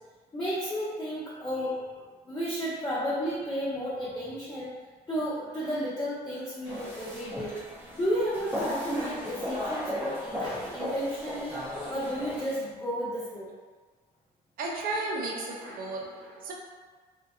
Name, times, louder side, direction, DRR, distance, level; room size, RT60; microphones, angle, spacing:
voice 1, 0.3-1.8 2.2-4.7 5.1-7.6 7.9-11.6 11.9-13.5 15.6-15.8, equal, 25° left, -14 dB, 1.0 m, -32 dB
sound 1, 6.7-12.5, left 1 dB, 10° right, 0.7 m, -35 dB
voice 2, 14.6-16.5, right 2 dB, 60° right, -1 dB, 0.6 m, -34 dB
2.7 x 2.2 x 2.2 m, 1.4 s
cardioid pair, 110°, 17 cm